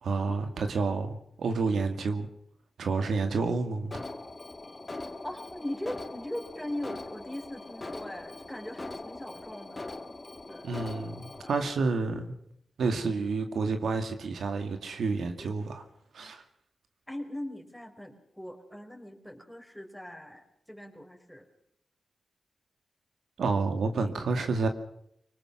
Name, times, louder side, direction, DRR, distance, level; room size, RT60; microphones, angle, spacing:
voice 1, 0.0-2.3 2.8-4.0 10.6-12.4 12.8-15.8 16.1-16.4 23.4-24.7, right 4 dB, 80° right, 6 dB, 2.2 m, -29 dB
Alarm, 3.9-11.7, left 2 dB, 30° left, 2.5 m, -42 dB
voice 2, 5.2-9.9 10.5-10.7 15.4-15.6 16.2-16.3 17.1-21.5, left 1 dB, 5° left, 3 dB, 5.2 m, -40 dB
25.0 x 19.0 x 6.4 m, 0.73 s
cardioid pair, 60°, 0 cm